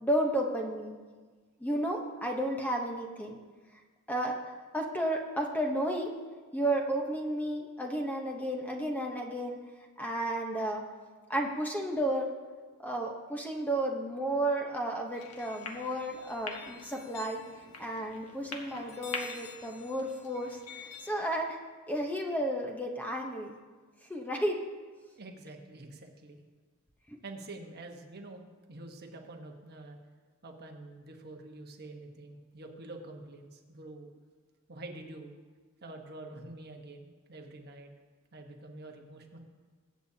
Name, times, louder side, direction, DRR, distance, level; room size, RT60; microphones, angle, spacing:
voice 1, 0.0-0.9 1.6-3.4 4.1-4.3 4.7-6.1 6.5-9.6 10.0-10.8 11.3-12.3 12.8-17.4 17.8-21.6 21.9-23.6 24.1-24.6 27.1-27.2, right 1 dB, 10° left, 1 dB, 0.9 m, -32 dB
sound 1, 15.1-21.2, left 4 dB, 85° left, 1.3 m, -44 dB
voice 2, 25.1-26.4 27.2-28.4 28.7-30.0 30.4-34.1 34.7-35.3 35.8-37.9 38.3-39.4, right 2 dB, 45° right, 3 dB, 1.2 m, -47 dB
22.0 x 8.3 x 2.8 m, 1.4 s
head